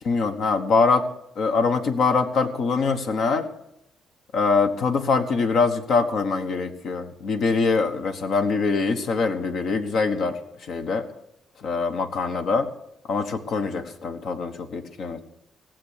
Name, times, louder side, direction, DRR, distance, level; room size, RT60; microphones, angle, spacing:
voice 1, 0.0-1.0 1.4-3.5 4.3-10.4 10.7-11.0 11.6-12.7 13.1-15.2, left 4 dB, 65° left, 8 dB, 1.2 m, -23 dB
17.0 x 7.5 x 6.6 m, 0.83 s
cardioid pair, 90°, 0 cm